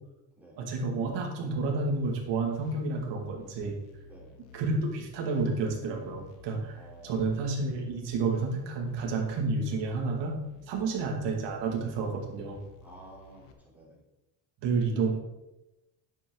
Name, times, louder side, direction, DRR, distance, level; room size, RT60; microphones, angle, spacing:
voice 1, 0.6-3.7 4.5-6.8 7.0-10.3 10.7-12.6 14.6-15.1, right 3 dB, 65° right, 1 dB, 2.5 m, -30 dB
sound 1, 1.9-13.5, left 1 dB, 85° left, 1.3 m, -53 dB
voice 2, 4.0-4.4 6.7-7.5 10.7-11.0 12.8-14.0, right 1 dB, 5° right, -5 dB, 3.7 m, -52 dB
9.7 x 7.5 x 4.0 m, 0.98 s
cardioid pair, 105°, 45 cm